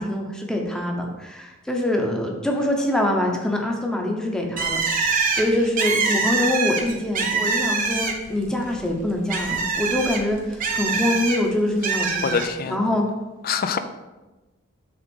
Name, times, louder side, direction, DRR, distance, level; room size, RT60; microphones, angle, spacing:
voice 1, 0.0-13.1, left 1 dB, 5° left, 1 dB, 0.9 m, -25 dB
Bird, 4.6-8.4 8.8-11.4 11.8-12.5, right 4 dB, 45° right, 1.0 m, -24 dB
voice 2, 12.2-12.9 13.4-13.8, left 6 dB, 50° left, 10 dB, 0.5 m, -25 dB
6.0 x 3.7 x 5.3 m, 1.1 s
head